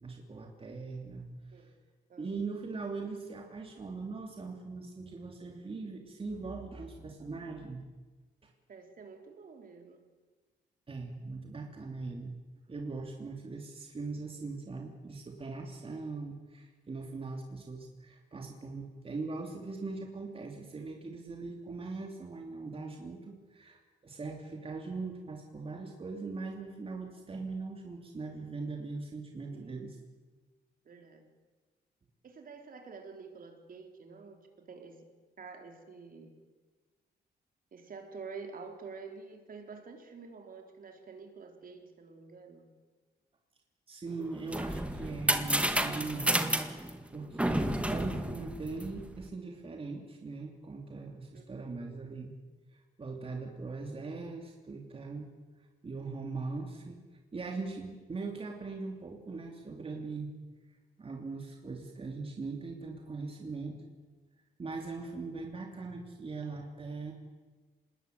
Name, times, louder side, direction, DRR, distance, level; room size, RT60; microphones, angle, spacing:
voice 1, 0.0-1.7 2.2-7.8 8.4-8.5 10.9-12.3 12.7-30.0 43.9-52.3 52.7-55.3 55.8-57.0 57.3-60.3 61.0-63.8 64.6-67.1, right 3 dB, 30° right, 2 dB, 3.0 m, -40 dB
voice 2, 8.7-10.0 29.5-29.8 30.8-31.3 32.2-34.4 34.7-35.0 35.4-36.3 37.7-42.7 51.3-51.4, right 5 dB, 55° right, 4 dB, 4.1 m, -48 dB
sound 1, 44.2-49.2, right 1 dB, 5° right, 1.9 m, -31 dB
26.5 x 20.5 x 9.3 m, 1.3 s
cardioid pair, 125°, 18 cm